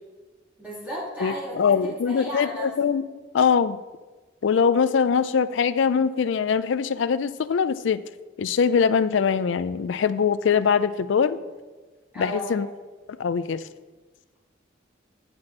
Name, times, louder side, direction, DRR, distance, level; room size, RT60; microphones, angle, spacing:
voice 1, 0.6-2.7 12.1-12.6, equal, 10° right, -7 dB, 2.8 m, -34 dB
voice 2, 1.2-3.0 3.3-3.8 4.4-8.0 8.4-11.4 12.2-12.7 13.1-13.6, left 6 dB, 75° left, 14 dB, 0.4 m, -22 dB
7.8 x 7.6 x 4.2 m, 1.3 s
head